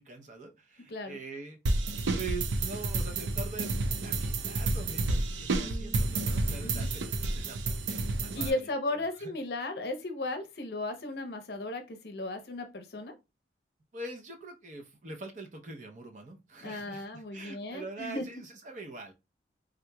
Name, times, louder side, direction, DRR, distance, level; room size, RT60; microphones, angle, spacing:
voice 1, 0.0-1.6 2.1-9.3 13.9-19.1, right 3 dB, 45° right, 0.6 m, -44 dB
sound 1, 1.7-8.5, right 2 dB, 85° right, 0.5 m, -30 dB
voice 2, 5.6-6.1 6.6-6.9 8.3-13.1 16.6-18.2, left 2 dB, 60° left, 0.6 m, -36 dB
3.7 x 2.8 x 2.2 m
head